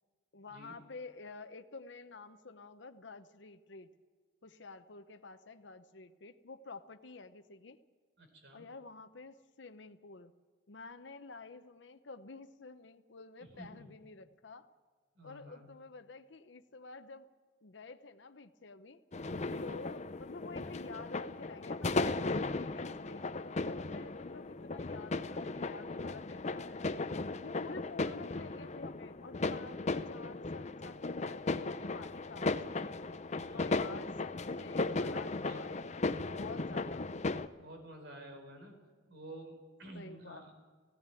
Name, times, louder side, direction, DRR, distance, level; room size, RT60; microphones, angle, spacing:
voice 1, 0.3-3.9 4.4-7.8 8.5-10.3 10.7-14.7 15.2-17.3 17.6-19.0 19.6-27.1 27.4-29.8 30.1-32.9 33.5-37.2 39.9-40.5, left 3 dB, 70° left, 9 dB, 0.8 m, -50 dB
voice 2, 8.2-8.6 13.5-13.9 15.2-15.7 19.3-19.8 33.4-33.8 35.3-35.7 37.6-38.8 39.1-40.5, right 1 dB, 65° right, 4 dB, 4.2 m, -51 dB
sound 1, 19.1-37.5, left 3 dB, 40° left, 0.7 m, -36 dB
17.0 x 16.5 x 9.1 m, 1.5 s
head